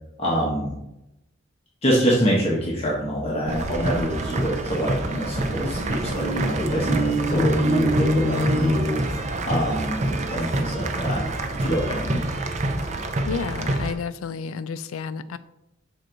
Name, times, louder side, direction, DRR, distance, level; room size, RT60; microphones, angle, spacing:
voice 1, 0.2-0.7 1.8-11.2 11.5-12.2, equal, 30° left, -5 dB, 1.1 m, -25 dB
sound 1, 3.5-13.9, right 2 dB, 35° right, 0.5 m, -27 dB
sound 2, 4.9-9.6, equal, 90° right, 1.0 m, -27 dB
voice 2, 13.2-15.4, left 5 dB, 80° left, 14 dB, 0.4 m, -31 dB
6.4 x 4.6 x 3.8 m, 0.88 s
head